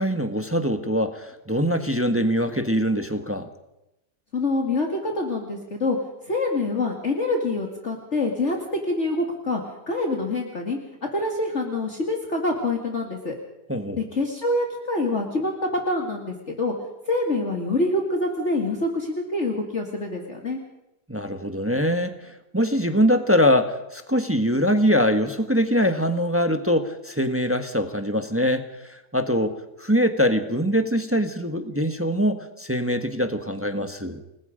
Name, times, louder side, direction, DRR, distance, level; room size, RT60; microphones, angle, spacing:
voice 1, 0.0-3.5 13.7-14.0 21.1-34.2, equal, 10° right, 7 dB, 1.3 m, -23 dB
voice 2, 4.3-6.0 6.3-9.6 9.9-10.8 11.1-13.4 14.0-15.5 15.9-16.7 17.1-20.6, left 2 dB, 45° left, 1 dB, 2.6 m, -26 dB
29.5 x 20.5 x 5.2 m, 0.90 s
omnidirectional pair, 1.8 m